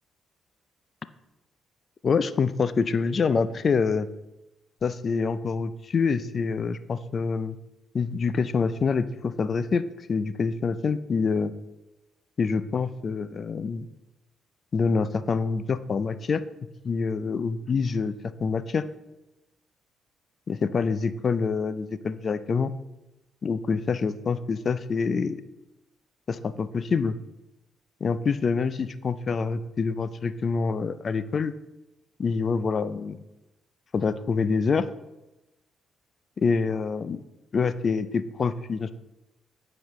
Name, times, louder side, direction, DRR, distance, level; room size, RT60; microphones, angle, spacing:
voice 1, 2.0-4.1 4.8-7.6 7.9-9.8 10.1-11.5 12.4-13.9 14.7-16.4 16.8-18.1 18.4-18.8 20.5-22.7 23.4-25.4 26.3-27.1 28.0-31.5 32.2-33.2 33.9-34.8 36.4-37.2 37.5-38.9, left 5 dB, 45° left, 14 dB, 0.4 m, -26 dB
9.3 x 4.9 x 3.1 m, 0.98 s
cardioid pair, 90°, 0 cm